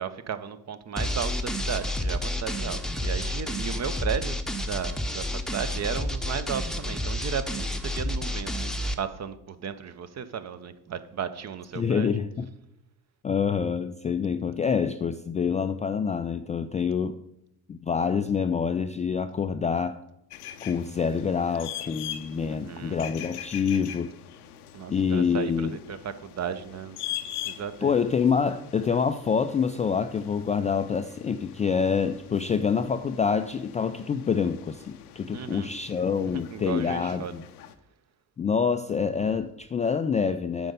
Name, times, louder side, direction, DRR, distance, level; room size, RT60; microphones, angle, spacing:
voice 1, 0.0-12.1 22.3-23.0 24.7-27.0 27.4-28.0 35.3-35.8 36.3-37.3, right 7 dB, 35° right, 13 dB, 0.8 m, -35 dB
sound 1, 1.0-8.9, left 1 dB, ahead, 0.8 m, -30 dB
voice 2, 11.8-12.5 13.2-17.2 17.7-20.0 20.6-24.1 24.9-25.7 27.8-37.4 38.4-40.7, left 6 dB, 20° left, 8 dB, 0.3 m, -26 dB
sound 2, 20.3-37.7, left 11 dB, 85° left, 0.6 m, -42 dB
9.0 x 5.2 x 5.3 m, 0.83 s
hypercardioid pair, 55°, 44 cm